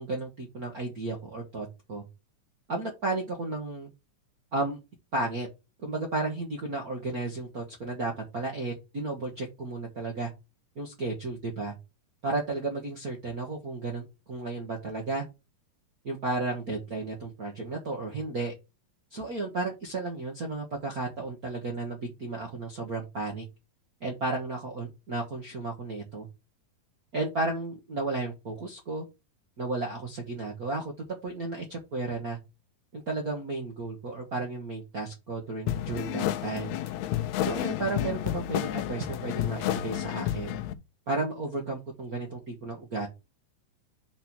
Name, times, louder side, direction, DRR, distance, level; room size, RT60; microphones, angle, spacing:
voice 1, 0.0-2.0 2.7-3.9 4.5-4.8 5.1-5.5 5.8-10.3 10.8-11.7 12.2-15.2 16.0-18.5 19.1-23.4 24.0-26.3 27.1-29.0 29.6-30.9 31.2-32.4 32.9-36.7 37.4-40.5 41.1-43.1, right 3 dB, 85° right, 1 dB, 0.8 m, -33 dB
sound 1, 35.7-40.7, left 13 dB, 80° left, 1.7 m, -31 dB
5.0 x 4.5 x 5.9 m, 0.25 s
omnidirectional pair, 3.8 m